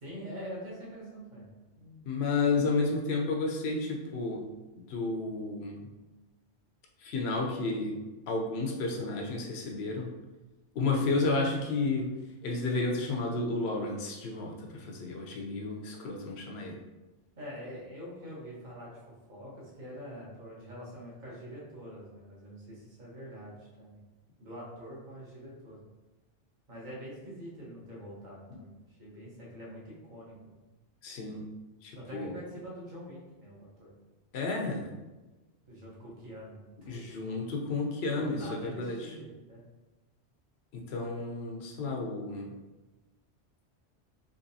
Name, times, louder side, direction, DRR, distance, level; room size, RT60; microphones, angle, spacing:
voice 1, 0.0-1.5 1.8-2.1 10.9-11.2 17.4-18.9 19.3-24.0 24.4-25.8 26.7-30.6 31.9-33.9 35.6-37.4 38.1-39.6, equal, 40° right, -5 dB, 1.2 m, -45 dB
voice 2, 2.1-4.4 4.9-5.8 7.0-8.0 8.3-10.1 10.7-12.1 12.4-16.8 31.0-31.4 31.8-32.3 34.3-34.9 36.8-39.0 40.7-42.5, left 3 dB, 65° left, 0 dB, 0.9 m, -31 dB
3.9 x 2.9 x 2.7 m, 1.1 s
omnidirectional pair, 1.2 m